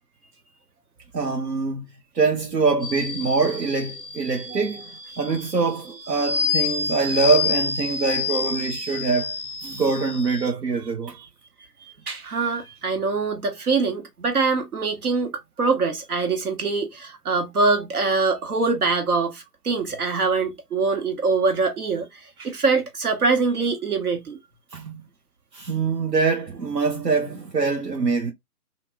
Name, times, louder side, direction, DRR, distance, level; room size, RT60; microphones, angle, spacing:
voice 1, 1.1-1.9 2.1-4.9 5.2-9.3 9.6-11.2 24.7-25.0 25.5-28.3, right 4 dB, 85° right, 1.0 m, -24 dB
sound 1, 2.8-10.5, left 5 dB, 5° left, 1.2 m, -29 dB
voice 2, 11.8-15.3 15.6-24.4, right 4 dB, 65° right, 1.4 m, -24 dB
3.0 x 2.6 x 2.3 m
figure-of-eight pair, 140°, 48 cm